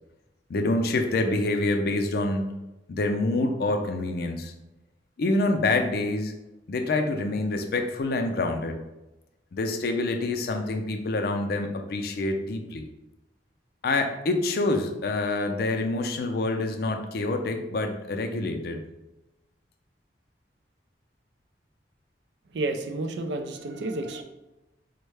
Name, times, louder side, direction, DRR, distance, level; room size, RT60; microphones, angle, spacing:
voice 1, 0.5-2.5 2.9-4.5 5.2-6.3 6.7-8.8 9.5-12.8 13.8-18.8, left 2 dB, 55° left, 4 dB, 0.4 m, -26 dB
voice 2, 22.5-24.2, right 2 dB, 75° right, 6 dB, 0.4 m, -30 dB
4.4 x 2.1 x 3.2 m, 0.99 s
head